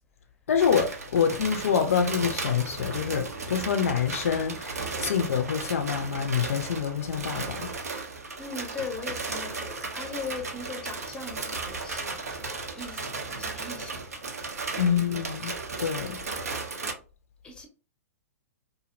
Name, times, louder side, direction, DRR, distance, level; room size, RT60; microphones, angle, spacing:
voice 1, 0.5-7.7 14.8-16.2, left 7 dB, 65° left, 0.4 m, -26 dB
sound 1, 0.6-16.9, right 4 dB, 80° right, 0.5 m, -35 dB
voice 2, 8.4-14.3 14.8-15.2 17.4-17.7, left 4 dB, 10° left, 0.6 m, -40 dB
2.5 x 2.0 x 2.4 m
figure-of-eight pair, 110°, 8 cm